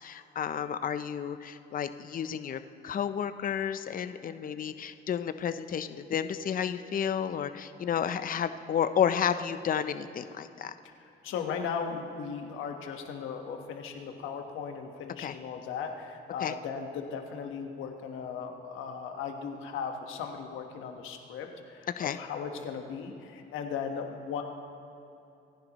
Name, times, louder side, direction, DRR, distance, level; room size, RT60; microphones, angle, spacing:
voice 1, 0.0-10.7 15.2-15.4 16.4-16.5 22.0-22.2, left 8 dB, 45° left, 11 dB, 0.6 m, -31 dB
voice 2, 11.2-24.4, left 6 dB, 90° left, 4 dB, 1.3 m, -37 dB
26.5 x 10.5 x 3.0 m, 2.8 s
cardioid pair, 90°, 20 cm